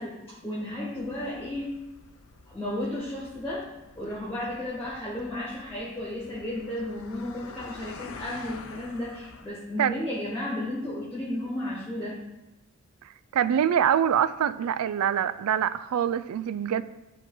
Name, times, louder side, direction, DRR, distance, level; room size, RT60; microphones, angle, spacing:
voice 1, 0.0-1.7 2.5-3.6 3.9-12.2, left 1 dB, 10° left, 1.4 m, -33 dB
sound 1, 0.9-9.5, left 4 dB, 75° left, 0.6 m, -48 dB
voice 2, 13.3-16.8, right 9 dB, 85° right, 0.3 m, -24 dB
11.0 x 3.9 x 3.8 m
head